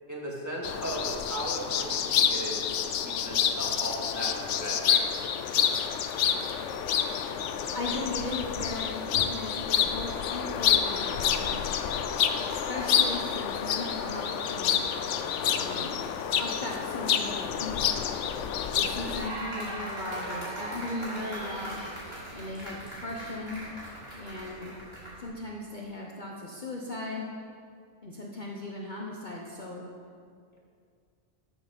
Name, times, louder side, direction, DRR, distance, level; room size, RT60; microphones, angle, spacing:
voice 1, 0.1-2.7 3.0-5.1, right 1 dB, 15° right, -5 dB, 2.3 m, -37 dB
sound 1, 0.6-19.3, left 8 dB, 75° left, 0.9 m, -28 dB
voice 2, 7.7-11.6 12.4-14.8 15.5-16.1 16.4-18.0 18.7-21.8 22.3-23.6 24.2-24.7 25.2-27.3 28.0-29.8, left 2 dB, 40° left, -2 dB, 1.1 m, -37 dB
sound 2, 18.6-25.2, right 1 dB, 50° right, 3.5 m, -39 dB
13.0 x 7.4 x 5.3 m, 2.2 s
omnidirectional pair, 1.3 m